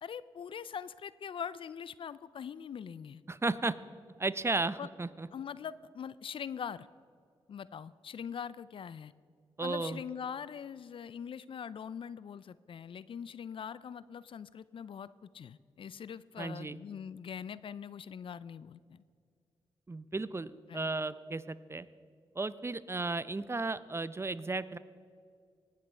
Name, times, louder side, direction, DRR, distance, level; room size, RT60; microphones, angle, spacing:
voice 1, 0.0-3.2 4.8-4.9 5.3-6.9 7.5-9.1 9.6-19.0 20.7-20.9, left 7 dB, 55° left, 18 dB, 0.4 m, -42 dB
voice 2, 3.3-3.7 4.2-5.3 9.6-10.0 16.4-16.8 19.9-21.9 22.4-24.8, right 3 dB, 25° right, 16 dB, 0.6 m, -34 dB
18.5 x 7.5 x 4.4 m, 2.2 s
supercardioid pair, 50°, 10 cm